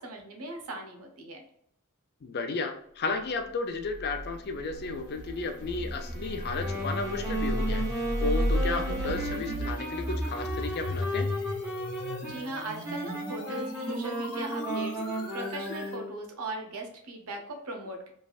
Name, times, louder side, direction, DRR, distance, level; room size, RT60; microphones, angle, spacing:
voice 1, 0.0-1.4 12.0-15.0 15.3-18.1, right 2 dB, 80° right, 2 dB, 0.8 m, -39 dB
voice 2, 2.2-11.3, left 3 dB, 45° left, 6 dB, 0.4 m, -33 dB
sound 1, 3.9-16.0, equal, 80° left, 0.9 m, -34 dB
Brass instrument, 4.1-9.6, right 2 dB, 45° right, 0.5 m, -47 dB
Wind instrument woodwind instrument, 6.5-16.2, right 1 dB, 10° right, 0.7 m, -35 dB
3.2 x 2.5 x 2.3 m, 0.68 s
head